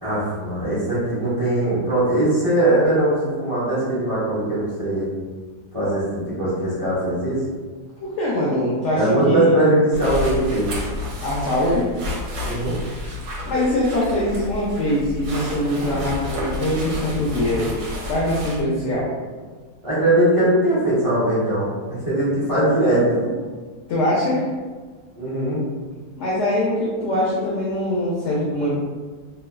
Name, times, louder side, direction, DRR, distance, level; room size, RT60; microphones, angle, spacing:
voice 1, 0.0-5.1 5.7-7.4 8.9-10.7 12.4-12.7 19.8-23.3 25.2-25.7, right 1 dB, 45° right, -10 dB, 0.4 m, -20 dB
voice 2, 8.0-9.7 11.2-11.9 13.5-17.7 18.1-19.1 23.9-24.5 26.2-28.7, left 1 dB, 80° left, -5 dB, 0.6 m, -22 dB
sound 1, 9.9-18.6, left 2 dB, 75° right, 1.1 m, -31 dB
2.9 x 2.1 x 2.3 m, 1.4 s
omnidirectional pair, 1.7 m